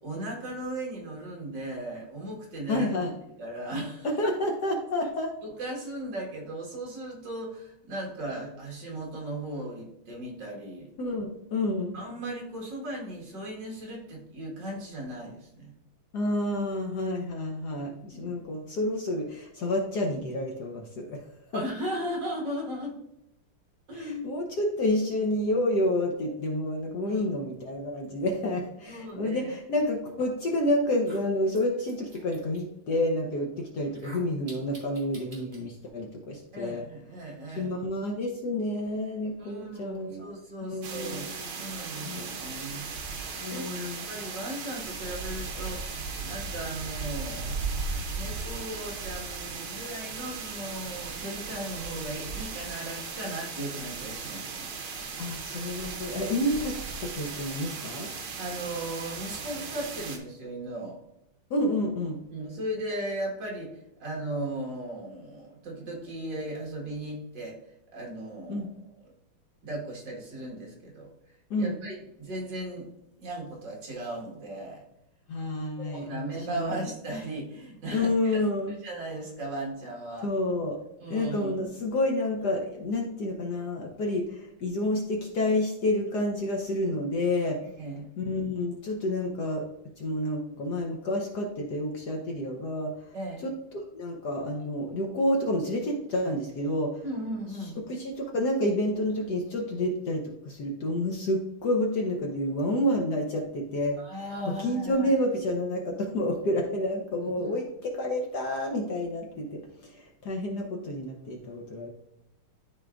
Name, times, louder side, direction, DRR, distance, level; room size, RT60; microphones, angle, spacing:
voice 1, 0.0-2.9 3.4-4.1 5.4-10.9 11.9-15.7 17.8-17.9 18.1-18.4 21.5-23.0 23.9-24.4 27.1-27.2 28.9-29.6 36.5-37.7 39.4-42.8 43.1-47.6 48.1-54.7 58.4-61.0 62.3-63.7 64.0-67.6 67.9-68.7 69.6-71.1 71.6-72.9 73.2-74.8 75.8-78.4 78.8-80.3 81.0-81.5 87.6-88.1 93.1-93.4 97.0-97.8 104.0-105.1 107.2-107.6, right 1 dB, 55° right, -2 dB, 2.4 m, -37 dB
voice 2, 2.7-3.1 4.0-5.3 11.0-11.9 16.1-21.2 21.5-21.6 23.9-36.8 37.5-40.3 40.6-41.6 42.0-42.4 43.4-44.1 55.2-58.1 61.5-62.2 68.5-68.7 71.5-71.7 75.3-76.9 77.9-78.7 80.2-80.8 81.1-87.6 88.2-89.6 90.0-92.9 93.4-97.0 97.9-111.9, left 1 dB, 60° left, 1 dB, 1.3 m, -29 dB
sound 1, 30.3-30.4 30.9-32.6 33.8-35.6, right 2 dB, 25° right, 2.2 m, -49 dB
sound 2, 40.8-60.2, right 4 dB, 70° right, 1.8 m, -37 dB
12.5 x 4.2 x 2.5 m, 0.83 s
omnidirectional pair, 2.4 m